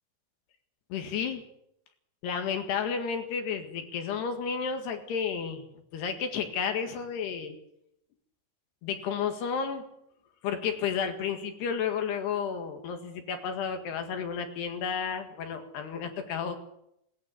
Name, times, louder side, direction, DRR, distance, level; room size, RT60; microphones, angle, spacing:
voice 1, 0.9-1.4 2.2-5.6 5.9-7.6 8.8-9.8 10.4-16.6, left 6 dB, 80° left, 6 dB, 4.0 m, -32 dB
19.5 x 18.0 x 8.4 m, 0.78 s
omnidirectional pair, 4.7 m